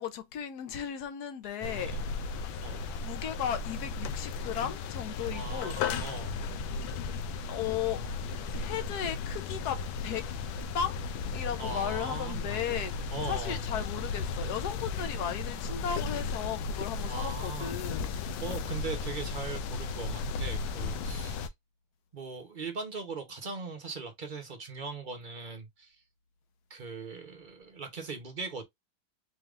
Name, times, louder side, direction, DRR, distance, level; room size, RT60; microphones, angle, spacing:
voice 1, 0.0-2.0 2.5-5.8 7.5-8.0 8.5-10.3 10.7-11.0 11.3-18.1, left 9 dB, 65° left, 1.1 m, -36 dB
voice 2, 1.5-2.0 2.6-3.0 5.3-6.4 11.6-12.6 13.1-13.6 17.1-17.7 18.4-21.5 22.1-26.0 26.7-28.6, right 4 dB, 45° right, 0.6 m, -40 dB
sound 1, 1.6-21.5, left 4 dB, 85° left, 1.4 m, -35 dB
4.4 x 3.4 x 2.4 m
omnidirectional pair, 2.1 m